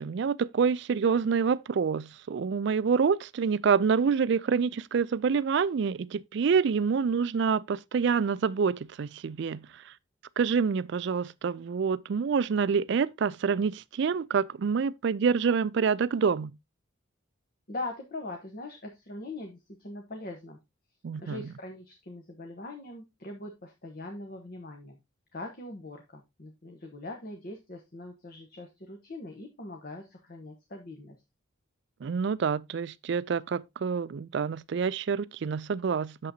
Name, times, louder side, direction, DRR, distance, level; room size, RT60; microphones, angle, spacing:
voice 1, 0.0-9.9 10.4-16.5 21.0-21.5 32.0-36.3, right 6 dB, 55° right, 0.3 m, -27 dB
voice 2, 17.7-20.6 21.2-25.0 25.3-31.2, left 2 dB, 45° left, 1.0 m, -41 dB
8.4 x 6.9 x 2.7 m
head